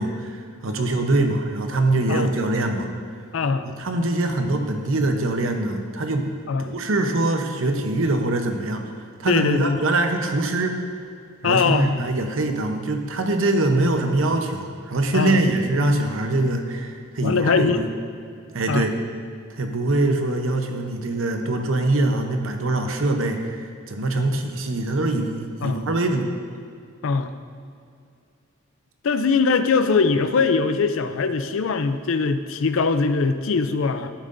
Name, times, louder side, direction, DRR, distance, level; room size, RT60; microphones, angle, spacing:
voice 1, 0.0-2.9 3.8-6.3 6.6-8.8 9.2-10.7 11.4-17.9 18.5-18.9 19.5-26.3, right 2 dB, 70° right, 5 dB, 0.8 m, -23 dB
voice 2, 3.3-3.7 6.5-6.7 9.3-9.8 11.4-11.9 15.1-15.4 17.2-17.9 18.7-18.9 25.6-25.8 27.0-27.3 29.0-34.1, left 4 dB, 70° left, 10 dB, 0.5 m, -21 dB
11.5 x 9.1 x 2.6 m, 2.3 s
head